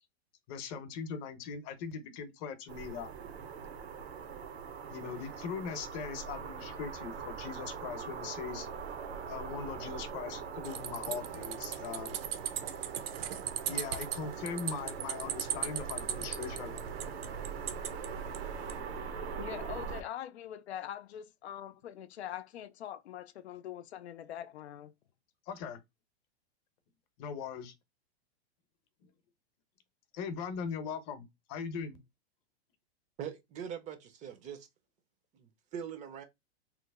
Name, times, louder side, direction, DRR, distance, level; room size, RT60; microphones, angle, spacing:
voice 1, 0.5-3.1 4.9-8.7 9.3-12.2 13.7-16.7 25.5-25.8 27.2-27.7 30.1-32.0, left 6 dB, 40° left, 0.8 m, -40 dB
sound 1, 2.7-20.0, right 6 dB, 80° right, 0.9 m, -42 dB
sound 2, 10.6-18.8, right 9 dB, 65° right, 0.7 m, -39 dB
voice 2, 19.4-24.9, left 11 dB, 85° left, 0.5 m, -43 dB
voice 3, 33.2-34.7 35.3-36.2, right 8 dB, 25° right, 0.5 m, -42 dB
3.1 x 2.0 x 3.4 m
hypercardioid pair, 135°, 32 cm